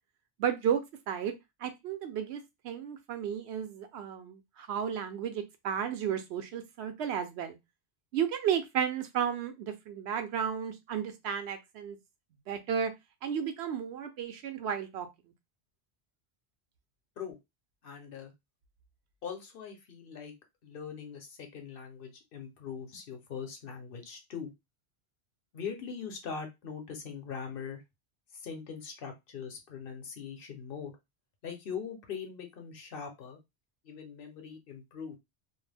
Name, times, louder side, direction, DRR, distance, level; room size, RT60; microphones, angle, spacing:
voice 1, 0.4-0.8 1.1-1.3 1.6-7.6 8.1-12.0 12.5-12.9 13.2-15.1, right 8 dB, 80° right, 0.8 m, -33 dB
voice 2, 17.8-18.3 19.2-20.3 20.6-24.5 25.5-27.8 28.3-30.9 31.4-33.4 33.8-35.2, left 6 dB, 60° left, 0.8 m, -41 dB
2.4 x 2.1 x 3.2 m
omnidirectional pair, 1.1 m